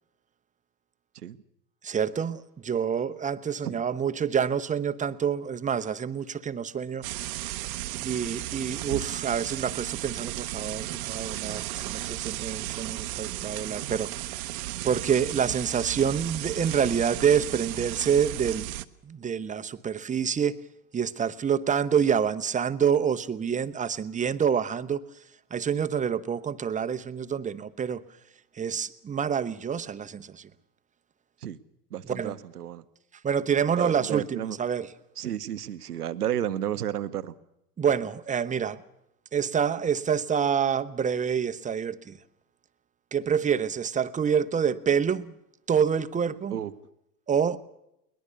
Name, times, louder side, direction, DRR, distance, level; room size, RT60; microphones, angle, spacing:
voice 1, 1.8-7.3 8.0-18.7 19.0-20.6 20.9-25.0 25.5-28.0 28.6-30.5 32.1-32.3 33.2-34.9 37.8-38.8 39.3-42.2 43.1-45.3 45.7-46.5 47.3-47.6, right 7 dB, 15° right, 0.9 m, -27 dB
sound 1, 7.0-18.9, right 16 dB, 60° right, 1.0 m, -34 dB
voice 2, 13.5-13.9 31.4-31.6 31.9-32.8 33.8-34.6 35.2-37.3 46.5-46.7, right 10 dB, 80° right, 1.1 m, -32 dB
22.0 x 20.0 x 6.9 m
figure-of-eight pair, 85°, 46 cm